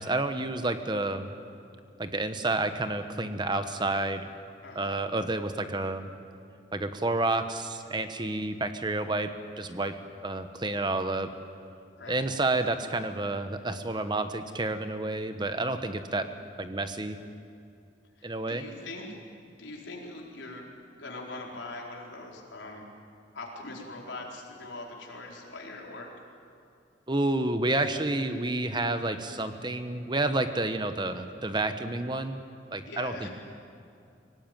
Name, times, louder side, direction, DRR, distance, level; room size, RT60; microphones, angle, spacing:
voice 1, 0.0-1.3 2.0-4.3 4.7-6.1 6.7-9.3 9.6-9.9 10.2-11.3 12.1-16.3 16.6-17.2 18.2-18.6 27.1-32.4 32.7-33.3, right 2 dB, 25° right, 9 dB, 1.0 m, -30 dB
voice 2, 4.6-5.0 12.0-12.8 18.2-19.2 19.6-22.9 23.3-26.4 32.9-33.3, left 2 dB, 85° left, -1 dB, 4.5 m, -42 dB
24.0 x 18.0 x 9.2 m, 2.5 s
head